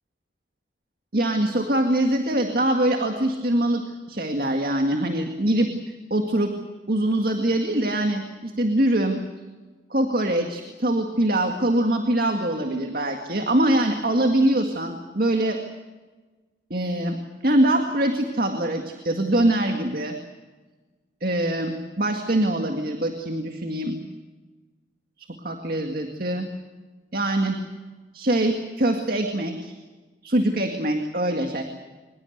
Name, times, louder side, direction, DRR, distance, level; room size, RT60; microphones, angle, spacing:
voice 1, 1.1-3.8 4.1-6.5 6.9-9.2 9.9-15.6 16.7-17.2 17.4-20.2 21.2-24.0 25.2-26.5 27.1-27.6 28.1-29.7 30.2-31.6, right 1 dB, 55° right, 4 dB, 2.0 m, -23 dB
24.0 x 21.0 x 8.1 m, 1.3 s
head